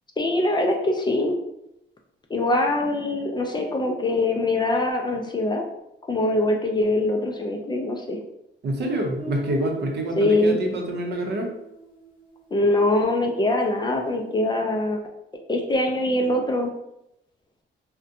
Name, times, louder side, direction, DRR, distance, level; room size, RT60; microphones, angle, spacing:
voice 1, 0.2-1.4 2.3-5.6 6.1-8.2 10.2-10.6 12.5-15.0 15.5-16.7, left 2 dB, 20° left, 2 dB, 0.3 m, -23 dB
voice 2, 8.6-11.5, right 1 dB, 60° right, 1 dB, 0.6 m, -27 dB
Guitar, 8.8-13.5, right 3 dB, 25° right, 0.9 m, -42 dB
2.5 x 2.1 x 2.6 m, 0.83 s
cardioid pair, 90°, 20 cm